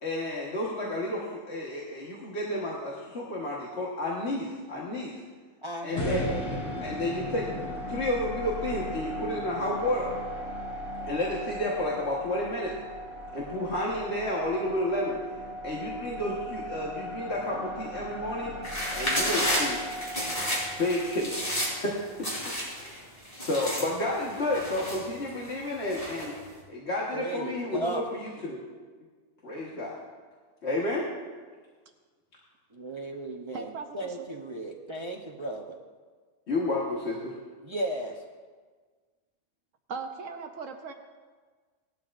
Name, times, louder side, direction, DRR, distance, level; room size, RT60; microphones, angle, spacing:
voice 1, 0.0-5.2 5.8-6.2 6.8-10.1 11.1-12.7 13.3-15.2 15.6-18.5 18.9-19.8 20.8-21.9 22.8-23.0 23.3-26.3 26.7-28.6 29.4-30.0 30.6-31.0 36.5-37.3, left 1 dB, 55° left, -4 dB, 1.7 m, -31 dB
voice 2, 5.6-6.6 27.1-28.0 32.7-35.8 37.6-38.2, right 1 dB, 30° right, 1 dB, 0.7 m, -35 dB
sound 1, 6.0-22.1, equal, 90° left, 2.3 m, -37 dB
sound 2, 18.6-21.9 22.2-23.0 23.2-25.4 25.9-26.4, equal, 30° left, 3.8 m, -31 dB
voice 3, 33.5-34.3 39.9-40.9, right 5 dB, 75° right, 5 dB, 1.1 m, -38 dB
19.0 x 12.0 x 2.5 m, 1.5 s
omnidirectional pair, 1.3 m